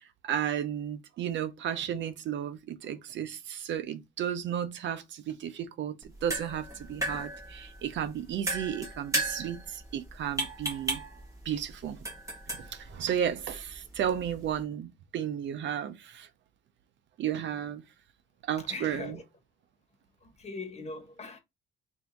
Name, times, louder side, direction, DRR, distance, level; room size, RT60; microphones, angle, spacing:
voice 1, 0.0-6.0 6.2-11.0 11.5-12.0 12.6-16.3 17.2-17.8 18.5-19.2, right 9 dB, 65° right, 0.6 m, -33 dB
sound 1, 6.0-14.6, right 1 dB, 15° right, 1.4 m, -37 dB
voice 2, 18.6-19.2 20.2-21.4, left 3 dB, 35° left, 1.3 m, -41 dB
3.4 x 2.7 x 4.5 m
cardioid pair, 90°, 20 cm